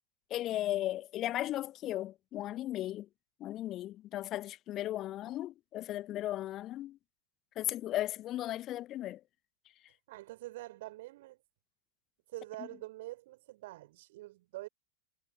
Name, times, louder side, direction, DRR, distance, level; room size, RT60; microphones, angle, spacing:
voice 1, 0.3-3.1 3.4-7.0 7.5-9.2 12.6-12.7, left 14 dB, 35° left, 1.1 m, -36 dB
voice 2, 10.1-11.4 12.3-14.7, right 18 dB, 55° right, 5.4 m, -45 dB
figure-of-eight pair, 90°, 0 cm